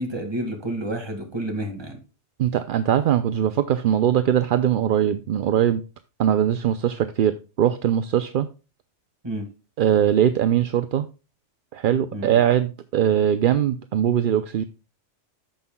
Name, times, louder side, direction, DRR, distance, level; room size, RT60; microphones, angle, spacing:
voice 1, 0.0-2.0 9.2-9.5 12.1-12.3, right 1 dB, 20° right, 1.9 m, -29 dB
voice 2, 2.4-5.8 6.2-8.5 9.8-11.1 11.7-14.6, right 10 dB, 60° right, 0.6 m, -21 dB
14.0 x 5.5 x 2.2 m
omnidirectional pair, 1.2 m